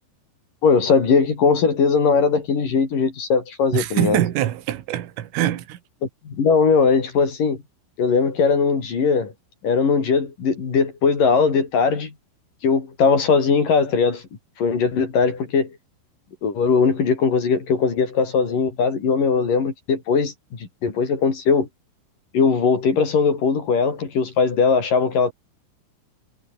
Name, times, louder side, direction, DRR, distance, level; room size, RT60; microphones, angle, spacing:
voice 1, 0.6-4.2 6.3-7.6 8.0-9.3 9.6-12.1 12.6-14.2 14.6-15.7 16.4-21.7 22.3-25.3, left 5 dB, 45° left, 5.5 m, -19 dB
voice 2, 3.7-5.8, right 13 dB, 75° right, 4.6 m, -23 dB
omnidirectional pair, 5.8 m